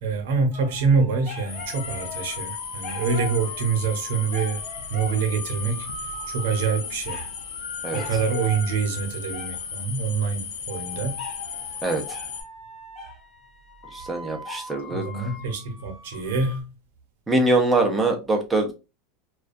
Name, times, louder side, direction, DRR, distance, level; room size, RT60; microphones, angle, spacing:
voice 1, 0.0-4.6 4.9-5.9 6.3-7.2 7.9-11.2 14.9-16.7, right 5 dB, 80° right, 0.7 m, -25 dB
sound 1, 0.5-9.8 10.7-16.6, left 2 dB, 30° left, 0.8 m, -40 dB
sound 2, 1.5-12.4, left 6 dB, 85° left, 0.6 m, -36 dB
voice 2, 13.9-15.3 17.3-18.7, right 2 dB, 10° right, 0.5 m, -23 dB
2.3 x 2.2 x 2.5 m
supercardioid pair, 155°, 0 cm